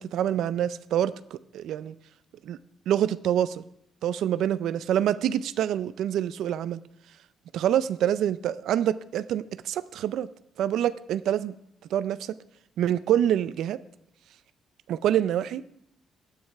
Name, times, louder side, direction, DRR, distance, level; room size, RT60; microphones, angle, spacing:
voice 1, 0.0-1.9 2.4-2.6 2.9-3.6 4.0-6.8 7.5-10.3 10.6-11.5 11.9-12.4 12.8-13.8 14.9-15.6, right 10 dB, 80° right, 16 dB, 0.4 m, -26 dB
17.0 x 9.6 x 3.4 m, 0.73 s
cardioid pair, 90°, 0 cm